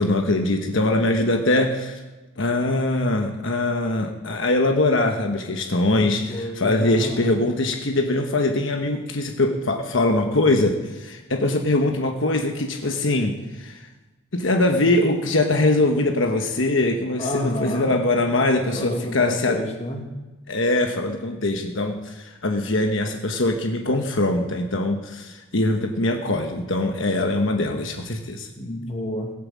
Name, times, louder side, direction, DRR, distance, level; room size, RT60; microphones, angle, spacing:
voice 1, 0.0-2.0 2.4-13.9 14.3-19.6 20.5-28.5, left 2 dB, 65° left, 4 dB, 1.2 m, -22 dB
voice 2, 6.0-7.3 17.2-18.0 18.7-20.1 28.6-29.3, left 1 dB, 30° left, 3 dB, 1.8 m, -30 dB
17.0 x 8.8 x 7.4 m, 1.2 s
head